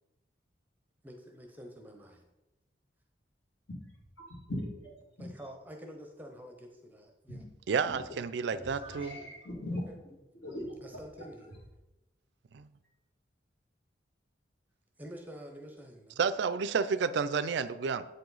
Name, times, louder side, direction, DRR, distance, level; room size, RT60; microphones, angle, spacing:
voice 1, 1.0-2.2 5.2-7.4 8.5-9.4 9.9-10.0 10.8-11.6 15.0-16.2, equal, 10° right, 3 dB, 0.6 m, -48 dB
voice 2, 4.3-5.3 7.3-7.4 7.8-8.0 8.6-9.9 10.4-10.7, left 1 dB, 70° left, -3 dB, 2.2 m, -39 dB
voice 3, 7.7-9.2 12.5-12.7 16.2-18.1, right 5 dB, 65° right, 14 dB, 0.4 m, -30 dB
8.1 x 4.8 x 3.9 m, 1.0 s
head